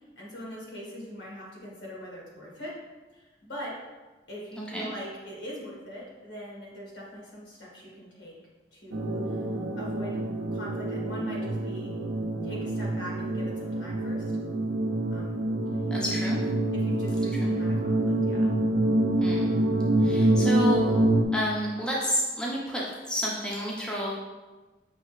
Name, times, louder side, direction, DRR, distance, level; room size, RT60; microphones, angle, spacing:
voice 1, 0.2-2.8 3.1-3.7 4.3-8.3 8.7-9.4 9.8-10.2 10.5-11.9 12.4-14.3 15.1-15.4 16.2-16.3 16.8-18.5, equal, 80° left, -4 dB, 1.5 m, -41 dB
voice 2, 4.6-4.9 15.9-16.4 17.4-17.5 19.2-19.5 20.0-21.0 21.3-24.1, equal, 5° left, -5 dB, 0.6 m, -30 dB
sound 1, 8.9-21.3, right 1 dB, 80° right, 0.4 m, -26 dB
5.6 x 2.8 x 3.0 m, 1.2 s
head